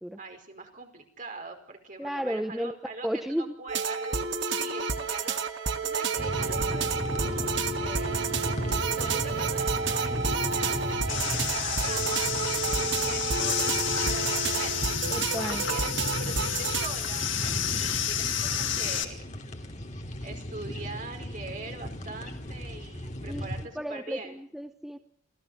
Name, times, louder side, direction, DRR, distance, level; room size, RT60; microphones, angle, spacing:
voice 1, 0.2-8.6 8.9-12.3 12.6-19.2 20.2-24.4, right 3 dB, 40° right, 4 dB, 4.9 m, -43 dB
voice 2, 2.0-2.7 3.0-3.5 15.1-15.6 23.3-23.5 23.7-25.0, equal, ahead, 7 dB, 0.8 m, -33 dB
sound 1, 3.7-16.9, right 5 dB, 65° right, 1.6 m, -30 dB
sound 2, 6.2-23.7, equal, 35° left, 2.9 m, -36 dB
sound 3, 11.1-19.0, left 10 dB, 70° left, 2.6 m, -31 dB
28.5 x 16.5 x 6.6 m, 0.63 s
head